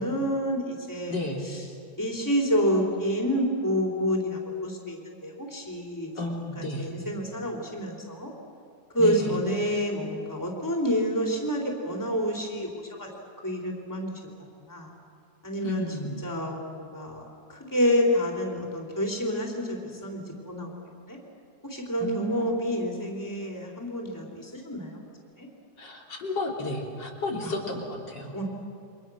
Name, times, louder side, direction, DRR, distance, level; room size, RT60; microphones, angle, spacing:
voice 1, 0.0-1.2 1.5-1.6 2.0-6.1 6.6-8.3 8.9-13.1 13.4-14.1 14.6-14.9 15.4-15.9 16.2-17.2 17.5-20.7 21.1-21.2 21.6-25.0 25.4-25.5 27.4-27.5 28.3-28.4, equal, 10° left, -1 dB, 3.6 m, -28 dB
voice 2, 1.1-1.5 6.2-6.9 9.0-9.4 15.6-16.2 22.0-22.5 25.8-28.4, left 2 dB, 85° left, -1 dB, 4.0 m, -32 dB
29.0 x 25.0 x 6.4 m, 2.5 s
omnidirectional pair, 1.9 m